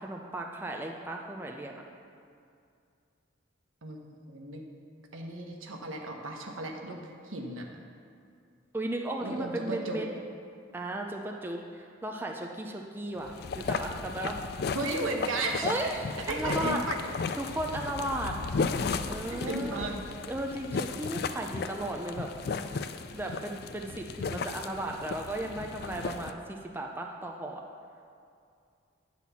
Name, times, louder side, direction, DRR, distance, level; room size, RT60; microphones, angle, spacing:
voice 1, 0.0-1.8 8.7-10.1 10.7-14.4 15.6-16.8 17.4-18.4 19.1-19.9 20.3-22.3 23.1-27.6, right 1 dB, 10° right, 1 dB, 0.4 m, -35 dB
voice 2, 3.8-4.7 5.1-7.7 9.2-10.0 14.7-15.7 16.2-17.0 19.2-20.0, right 2 dB, 90° right, 2 dB, 1.1 m, -35 dB
sound 1, 13.2-26.3, left 4 dB, 50° left, 0.3 m, -35 dB
10.0 x 4.2 x 7.0 m, 2.4 s
head